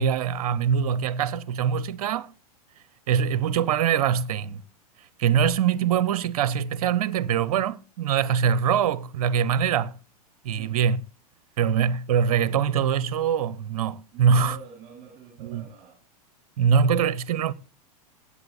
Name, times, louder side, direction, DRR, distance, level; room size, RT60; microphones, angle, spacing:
voice 1, 0.0-2.3 3.1-4.6 5.2-10.0 10.4-11.0 11.6-14.6 15.4-15.6 16.6-17.5, right 7 dB, 65° right, 0.7 m, -23 dB
voice 2, 11.5-11.8 14.1-16.0, right 7 dB, 35° right, 4.1 m, -47 dB
21.5 x 8.4 x 2.6 m
hypercardioid pair, 105°, 20 cm